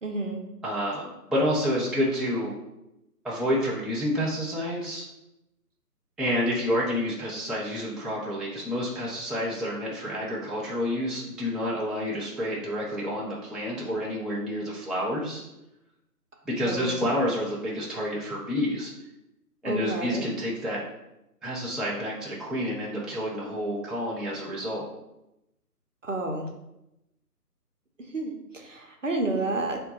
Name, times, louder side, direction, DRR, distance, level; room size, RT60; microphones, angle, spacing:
voice 1, 0.0-0.4 16.6-17.0 19.6-20.2 26.0-26.5 28.1-29.8, right 2 dB, 55° right, 3 dB, 0.5 m, -30 dB
voice 2, 0.6-2.5 3.2-5.0 6.2-15.4 16.5-18.9 19.6-20.8 21.4-24.9, equal, ahead, -6 dB, 0.4 m, -29 dB
3.7 x 2.2 x 4.0 m, 0.90 s
hypercardioid pair, 175°, 48 cm